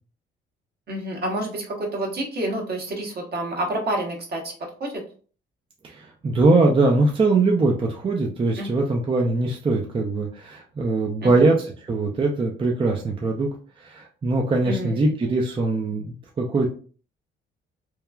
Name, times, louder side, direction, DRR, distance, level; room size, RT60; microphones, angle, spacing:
voice 1, 0.9-5.0 8.6-8.7 11.2-11.5 14.6-15.1, right 1 dB, 55° right, 0 dB, 1.0 m, -29 dB
voice 2, 5.8-13.5 13.8-16.7, right 3 dB, 25° right, 0 dB, 0.4 m, -22 dB
3.0 x 2.2 x 2.2 m, 0.41 s
cardioid pair, 90°, 20 cm